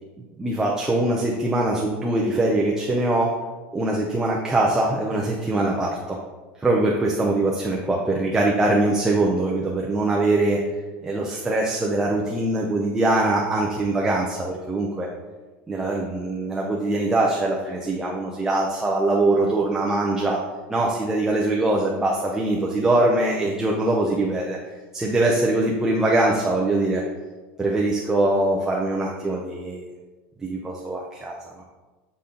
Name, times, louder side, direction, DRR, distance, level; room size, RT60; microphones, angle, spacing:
voice 1, 0.4-3.3 3.7-6.2 6.6-10.6 11.0-15.1 15.7-20.4 20.7-24.6 24.9-27.0 27.6-29.8 30.4-31.6, right 2 dB, 10° right, -2 dB, 0.7 m, -22 dB
8.2 x 4.2 x 3.8 m, 1.3 s
supercardioid pair, 150°, 6 cm